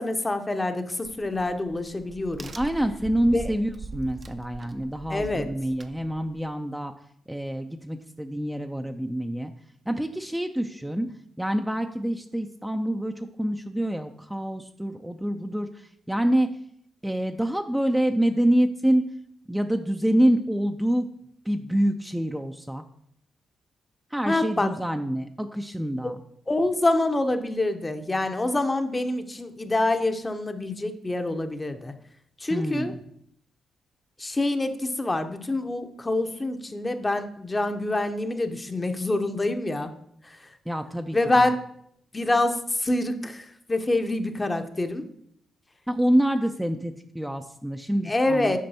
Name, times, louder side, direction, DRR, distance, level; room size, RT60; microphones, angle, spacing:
voice 1, 0.0-2.5 3.3-3.6 5.1-5.5 24.2-24.7 26.0-26.1 26.5-31.9 32.4-32.9 34.2-39.9 40.2-40.5 41.1-41.6 42.1-45.0 48.0-48.6, left 2 dB, 25° left, 7 dB, 0.8 m, -26 dB
Crack, 1.0-6.5, right 3 dB, 45° right, 0.6 m, -42 dB
voice 2, 2.6-6.9 7.3-9.5 9.9-11.1 11.4-16.5 17.0-19.1 19.5-21.1 21.5-22.8 24.1-26.2 32.5-33.0 40.7-41.4 45.9-48.6, right 1 dB, 5° right, 5 dB, 0.5 m, -26 dB
8.6 x 5.1 x 2.8 m, 0.69 s
supercardioid pair, 50°, 0 cm